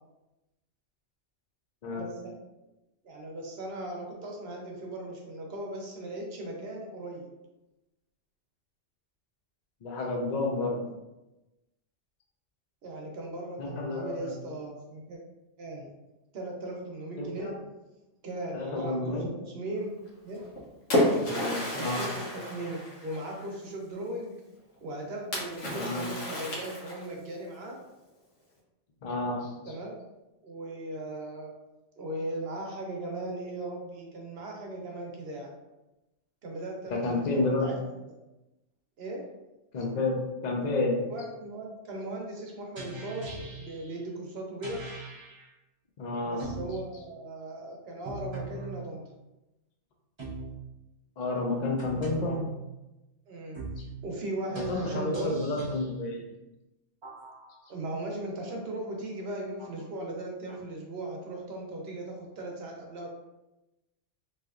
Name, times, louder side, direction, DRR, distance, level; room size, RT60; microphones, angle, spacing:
voice 1, 1.9-2.3 3.0-7.3 12.8-15.2 15.6-15.9 16.3-17.6 18.2-19.9 20.2-20.4 20.9-21.3 21.8-24.3 24.8-27.8 29.6-30.0 30.4-31.5 32.0-35.5 36.4-37.8 39.0-39.2 41.1-44.9 46.2-49.0 53.3-53.6 54.0-55.4 57.7-63.1, right 1 dB, 60° right, 0 dB, 0.9 m, -38 dB
voice 2, 9.8-10.8 13.6-14.3 17.2-17.5 18.5-19.3 21.2-22.1 25.7-26.1 29.0-29.5 36.9-37.7 39.7-41.0 46.0-46.4 51.2-52.4 54.5-56.2, left 2 dB, 50° left, 0 dB, 0.6 m, -30 dB
Splash splatter, 20.3-23.5 25.3-27.2, left 1 dB, 80° left, 1.2 m, -31 dB
sound 1, 42.8-43.9 44.6-45.4 46.4-46.8 48.0-48.7 50.2-50.6 51.8-52.6 53.5-53.9 54.5-55.9 57.0-57.7 58.5-58.6 59.6-59.8 60.5-60.6, right 2 dB, 35° right, 0.5 m, -40 dB
3.2 x 2.7 x 2.3 m, 0.99 s
omnidirectional pair, 1.3 m